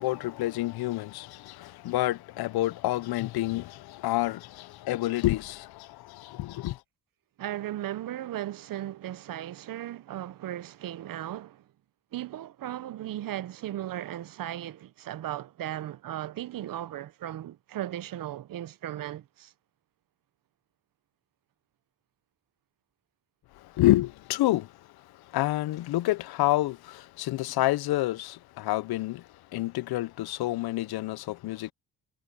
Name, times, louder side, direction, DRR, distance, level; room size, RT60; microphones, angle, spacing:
voice 1, 0.0-6.8 23.5-31.7, left 16 dB, 75° left, 0.6 m, -28 dB
voice 2, 7.4-11.6 12.1-19.5, right 12 dB, 60° right, 0.7 m, -36 dB
cardioid pair, 100°, 38 cm